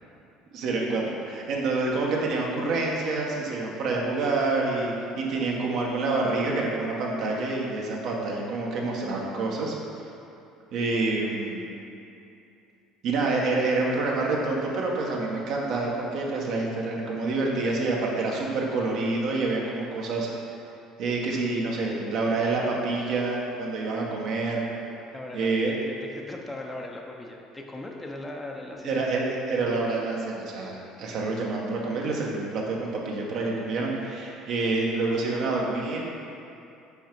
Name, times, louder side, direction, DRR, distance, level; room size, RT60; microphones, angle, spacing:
voice 1, 0.5-9.7 10.7-11.6 13.0-20.3 21.0-24.6 25.3-25.7 28.8-36.1, right 3 dB, 65° right, -2 dB, 1.1 m, -27 dB
voice 2, 25.1-29.0, left 2 dB, 15° left, 1 dB, 0.8 m, -39 dB
5.5 x 4.6 x 4.6 m, 2.7 s
hypercardioid pair, 75°, 0 cm